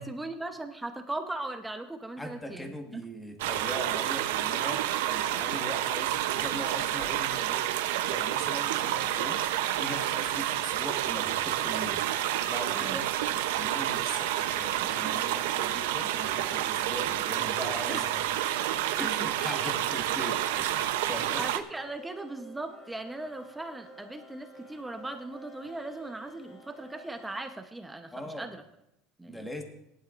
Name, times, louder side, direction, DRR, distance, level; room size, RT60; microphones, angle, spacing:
voice 1, 0.0-3.0 12.7-13.0 17.9-18.0 19.1-19.2 19.6-19.7 21.4-28.6 29.2-29.5, right 2 dB, 10° right, 6 dB, 0.8 m, -38 dB
voice 2, 2.2-9.4 9.8-12.0 12.5-13.1 13.3-18.2 19.0-21.4 28.1-28.5 29.3-29.6, equal, 5° left, 4 dB, 1.5 m, -40 dB
sound 1, 3.4-21.6, right 12 dB, 90° right, 0.7 m, -29 dB
sound 2, 21.7-27.5, right 1 dB, 35° left, 2.5 m, -52 dB
18.0 x 11.5 x 2.5 m, 0.85 s
supercardioid pair, 135°, 0 cm